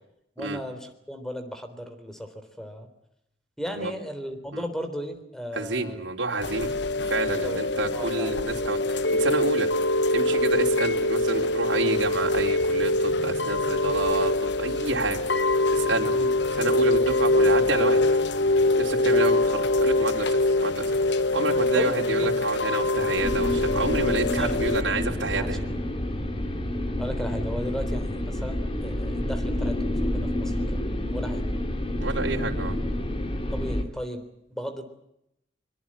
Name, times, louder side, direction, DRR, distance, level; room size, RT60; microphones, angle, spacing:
voice 1, 0.4-2.9 3.6-6.0 7.4-7.6 7.9-8.3 16.1-16.3 21.7-22.0 24.3-24.6 25.3-25.7 27.0-30.8 31.1-31.5 33.5-34.2 34.5-34.8, equal, 5° left, 8 dB, 3.6 m, -35 dB
voice 2, 5.5-6.7 7.1-9.7 10.1-16.3 16.6-18.2 18.8-25.6 32.0-32.8, right 2 dB, 75° right, 0 dB, 3.8 m, -29 dB
Chime / Rain, 6.4-24.8, left 2 dB, 65° left, 1.1 m, -24 dB
sound 1, 23.2-33.8, left 1 dB, 30° left, 2.9 m, -29 dB
24.5 x 23.5 x 7.5 m, 0.81 s
head